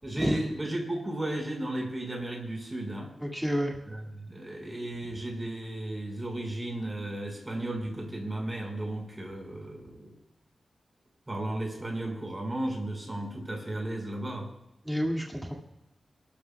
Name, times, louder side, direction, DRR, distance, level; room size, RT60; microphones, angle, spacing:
voice 1, 0.0-3.1 3.9-10.1 11.3-14.5, right 1 dB, 20° right, 1 dB, 5.3 m, -34 dB
voice 2, 3.2-3.8 14.8-15.5, equal, 5° right, -1 dB, 2.1 m, -29 dB
29.5 x 13.0 x 2.3 m, 0.89 s
wide cardioid pair, 95°, 0 cm